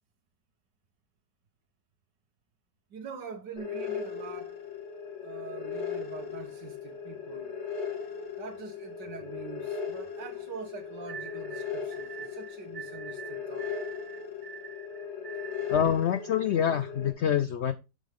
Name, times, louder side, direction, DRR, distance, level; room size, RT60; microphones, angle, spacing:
voice 1, 2.9-4.6 5.2-7.6 8.4-13.8, right 6 dB, 85° right, 1.9 m, -44 dB
sound 1, 3.6-17.1, left 6 dB, 40° left, 2.1 m, -38 dB
sound 2, 11.1-16.0, right 7 dB, 45° right, 0.6 m, -45 dB
voice 2, 15.7-17.7, left 9 dB, 85° left, 0.6 m, -26 dB
7.5 x 7.2 x 3.6 m
omnidirectional pair, 1.8 m